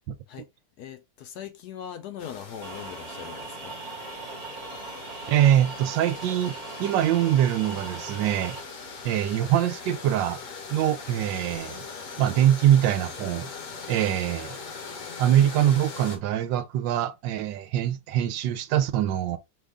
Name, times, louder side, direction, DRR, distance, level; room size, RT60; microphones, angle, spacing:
voice 1, 0.8-3.8, left 9 dB, 70° left, 1.0 m, -40 dB
sound 1, 2.2-16.2, left 5 dB, 50° left, 1.2 m, -41 dB
sound 2, 2.6-8.6, right 4 dB, 45° right, 1.4 m, -39 dB
voice 2, 5.3-8.6 9.0-10.4 10.7-11.8 12.2-13.5 13.9-14.5 15.2-19.4, right 11 dB, 80° right, 1.3 m, -23 dB
5.4 x 2.5 x 3.4 m
omnidirectional pair, 2.0 m